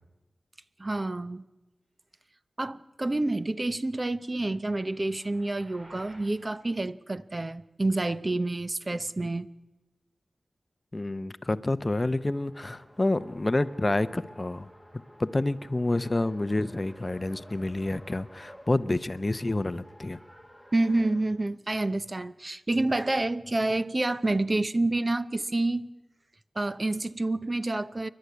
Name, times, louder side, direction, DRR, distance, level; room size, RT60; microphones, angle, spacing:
voice 1, 0.8-1.4 2.6-9.5 20.7-25.9 26.6-28.1, right 2 dB, 30° right, 0.7 m, -28 dB
sound 1, 4.1-6.4, right 1 dB, 65° right, 6.2 m, -54 dB
voice 2, 10.9-14.7 15.2-20.2, left 2 dB, 25° left, 0.7 m, -28 dB
Race car auto racing, 12.1-21.3, equal, 5° right, 1.5 m, -53 dB
28.5 x 11.5 x 9.4 m
wide cardioid pair, 95°, 0 cm